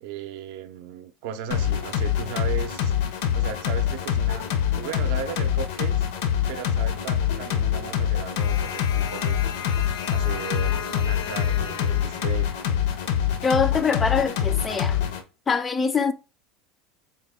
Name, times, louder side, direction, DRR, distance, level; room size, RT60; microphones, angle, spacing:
voice 1, 0.0-3.0 3.3-4.5 4.8-6.1 6.5-9.4 10.1-12.6, right 9 dB, 70° right, 0.5 m, -36 dB
sound 1, 1.5-15.2, left 9 dB, 75° left, 0.5 m, -25 dB
voice 2, 13.4-15.0 15.5-16.1, left 5 dB, 20° left, 0.3 m, -23 dB
3.9 x 2.1 x 3.5 m
supercardioid pair, 130°, 0 cm